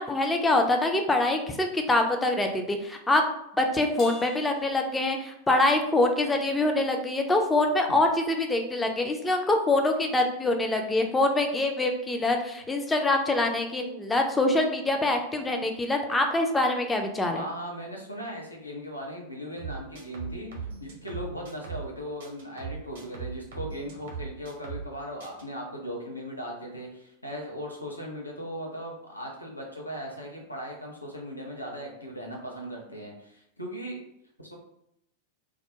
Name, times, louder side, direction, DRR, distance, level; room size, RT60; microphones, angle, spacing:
voice 1, 0.0-3.2 3.6-17.4, left 2 dB, 10° left, 4 dB, 0.4 m, -25 dB
Crash cymbal, 4.0-5.7, left 3 dB, 30° left, 0.7 m, -46 dB
voice 2, 17.3-20.5 20.8-34.0 34.5-34.6, equal, 85° left, -1 dB, 0.5 m, -38 dB
sound 1, 19.6-21.9 22.2-24.9 25.2-25.4, right 6 dB, 60° right, 0.6 m, -39 dB
2.2 x 2.1 x 2.7 m, 0.79 s
figure-of-eight pair, 90°, 0 cm